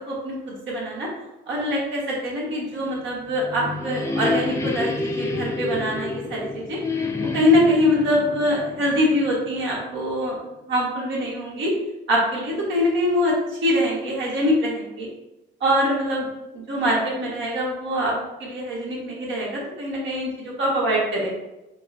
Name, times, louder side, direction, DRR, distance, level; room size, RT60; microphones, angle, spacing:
voice 1, 0.1-1.1 1.5-6.8 7.3-10.4 10.7-11.7 12.1-15.1 15.6-16.3 16.5-21.3, equal, 70° right, -4 dB, 1.4 m, -24 dB
sound 1, 3.1-9.8, left 3 dB, 15° left, 0.5 m, -29 dB
5.2 x 2.1 x 2.5 m, 0.97 s
cardioid pair, 90°, 20 cm